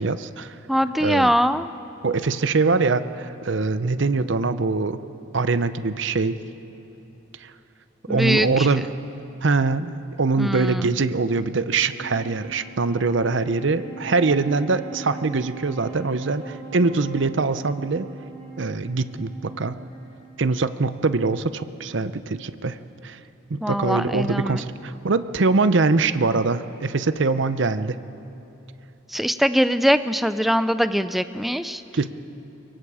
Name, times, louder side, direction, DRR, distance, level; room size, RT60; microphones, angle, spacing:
voice 1, 0.0-0.6 1.0-1.3 2.0-5.0 5.3-6.4 7.4-7.5 8.1-8.9 9.4-18.1 18.6-19.8 20.4-22.8 23.0-23.2 23.5-28.0 31.9-32.1, right 3 dB, 65° right, 12 dB, 0.7 m, -23 dB
voice 2, 0.7-1.7 8.1-8.8 10.4-10.9 23.6-24.6 29.1-31.8, equal, ahead, 12 dB, 0.4 m, -22 dB
Wind instrument woodwind instrument, 11.7-21.2, right 4 dB, 20° left, 6.2 m, -41 dB
24.0 x 23.0 x 4.9 m, 2.9 s
head